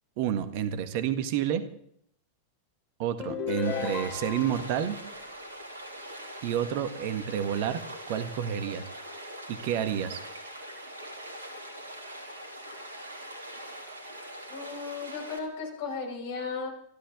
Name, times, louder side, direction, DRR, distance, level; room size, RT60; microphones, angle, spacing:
voice 1, 0.2-1.6 3.0-4.9 6.4-8.9 9.5-10.2, right 9 dB, 50° right, 11 dB, 1.6 m, -30 dB
sound 1, 3.2-4.7, left 7 dB, 35° left, 3.5 m, -33 dB
Stream, 3.6-15.4, right 1 dB, 75° right, 3.1 m, -42 dB
voice 2, 14.5-16.7, left 5 dB, 55° left, 1 dB, 5.7 m, -35 dB
27.0 x 13.0 x 3.7 m, 0.68 s
figure-of-eight pair, 90°, 0 cm